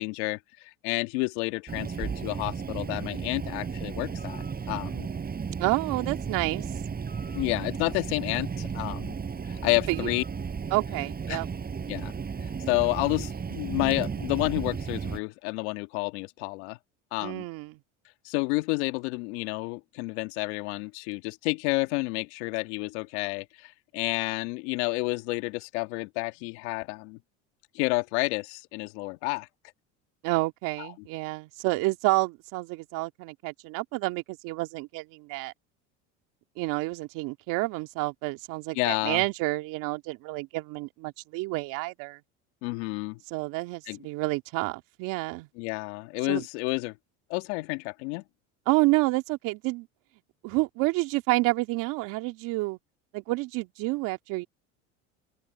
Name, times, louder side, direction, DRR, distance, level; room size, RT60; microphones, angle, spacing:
voice 1, 0.0-5.1 7.3-9.2 9.4-10.2 11.3-11.4 11.9-12.1 12.7-16.8 17.1-17.4 18.2-27.2 27.7-29.5 30.8-30.9 38.7-39.2 42.6-43.2 43.9-44.0 45.6-47.0 47.3-48.2, left 26 dB, 75° left, 2.0 m, -30 dB
Bird, 1.7-15.2, right 6 dB, 25° right, 6.0 m, -34 dB
voice 2, 5.6-6.6 9.9-10.1 10.7-11.5 17.2-17.8 30.2-35.5 36.6-42.2 43.3-45.5 46.3-46.4 48.7-49.9 50.4-52.8 53.1-54.5, right 22 dB, 65° right, 2.4 m, -29 dB
open air
supercardioid pair, 95°, 34 cm